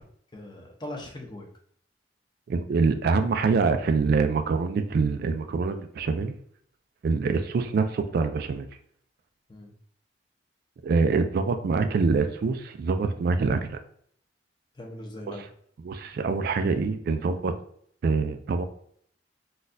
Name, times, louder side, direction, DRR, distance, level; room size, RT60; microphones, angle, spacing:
voice 1, 0.3-1.5 9.5-9.7 14.7-15.5, left 1 dB, 25° left, 0 dB, 0.7 m, -40 dB
voice 2, 2.5-6.3 7.0-8.7 10.8-13.8 15.8-17.5 18.0-18.7, right 4 dB, 60° right, 8 dB, 0.3 m, -25 dB
3.9 x 2.3 x 2.5 m, 0.63 s
head